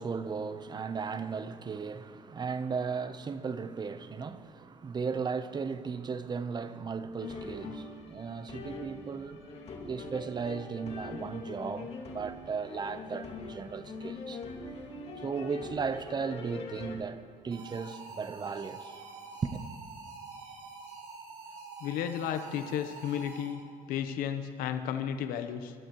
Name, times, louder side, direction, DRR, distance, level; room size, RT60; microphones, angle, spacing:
voice 1, 0.0-9.5 9.8-14.8 15.2-19.0 19.4-19.7, right 5 dB, 30° right, 0.9 m, -36 dB
sound 1, 7.2-17.0, left 3 dB, 45° left, 2.5 m, -43 dB
sound 2, 17.5-23.8, right 4 dB, 75° right, 4.1 m, -46 dB
voice 2, 21.8-23.6 23.9-25.7, left 9 dB, 75° left, 1.0 m, -33 dB
29.0 x 13.0 x 3.1 m
supercardioid pair, 95°, 15 cm